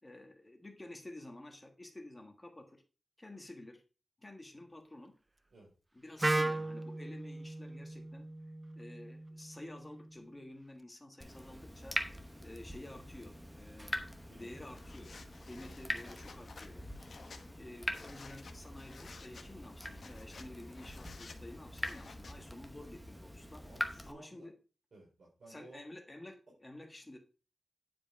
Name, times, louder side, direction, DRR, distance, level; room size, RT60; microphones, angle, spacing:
voice 1, 0.0-2.8 3.2-3.8 4.2-5.1 5.9-8.3 8.7-12.0 12.4-14.0 14.3-17.0 17.6-23.6 24.1-24.5 25.5-27.2, left 1 dB, 15° left, 3 dB, 1.5 m, -51 dB
Wind instrument woodwind instrument, 6.2-10.1, right 2 dB, 15° right, 0.3 m, -37 dB
Water tap faucet / Drip, 11.2-24.1, equal, ahead, 1.0 m, -43 dB
sound 1, 14.0-22.6, left 3 dB, 60° left, 1.1 m, -54 dB
voice 2, 23.6-24.5 24.9-25.8, right 2 dB, 65° right, -6 dB, 4.6 m, -56 dB
9.6 x 5.0 x 4.6 m, 0.34 s
wide cardioid pair, 155°, 0 cm